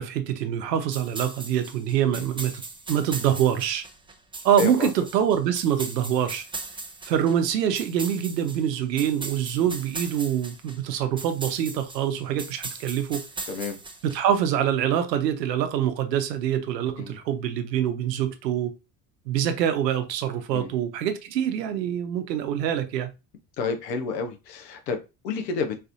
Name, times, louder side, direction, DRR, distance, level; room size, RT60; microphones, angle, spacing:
voice 1, 0.0-2.5 2.9-3.8 4.4-6.4 7.0-13.2 14.0-18.7 19.3-23.1, right 9 dB, 90° right, 0.7 m, -25 dB
sound 1, 0.9-14.4, right 3 dB, 10° right, 0.7 m, -38 dB
voice 2, 4.6-4.9 9.6-9.7 13.5-13.8 17.0-17.2 20.5-20.7 23.6-25.8, left 4 dB, 85° left, 0.9 m, -30 dB
4.0 x 2.7 x 2.6 m
hypercardioid pair, 70°, 48 cm